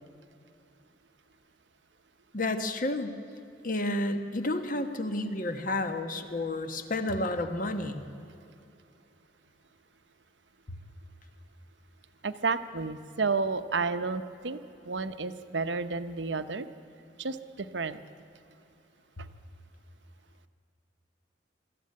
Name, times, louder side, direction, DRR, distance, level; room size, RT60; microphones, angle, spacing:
voice 1, 2.3-3.2 3.6-8.0, left 2 dB, 50° left, 8 dB, 1.3 m, -31 dB
voice 2, 12.2-14.6 14.9-16.7 17.2-18.0 19.2-19.3, right 4 dB, 80° right, 11 dB, 0.9 m, -31 dB
22.0 x 14.0 x 9.6 m, 2.8 s
head